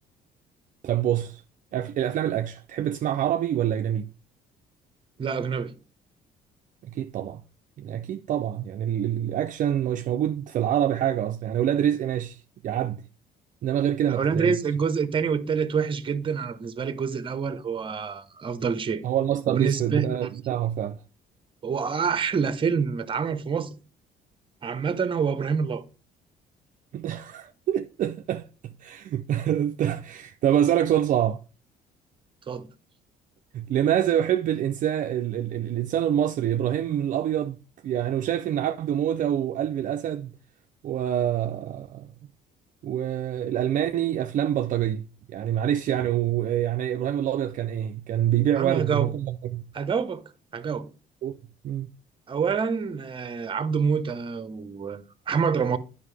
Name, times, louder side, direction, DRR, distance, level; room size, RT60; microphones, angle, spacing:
voice 1, 0.8-1.4 1.7-4.1 6.9-7.4 7.8-13.0 13.6-14.6 19.0-21.0 26.9-31.4 33.5-37.6 37.8-40.3 40.8-42.1 42.8-49.7 51.2-51.4 51.6-51.9, right 10 dB, 50° right, 0.4 m, -26 dB
voice 2, 5.2-5.7 14.1-19.0 19.5-20.1 21.6-23.7 24.6-25.8 32.5-32.7 48.6-49.1 49.7-50.2 50.5-50.9 52.3-55.8, right 6 dB, 30° right, 0.8 m, -27 dB
9.4 x 5.5 x 3.3 m
cardioid pair, 110°, 17 cm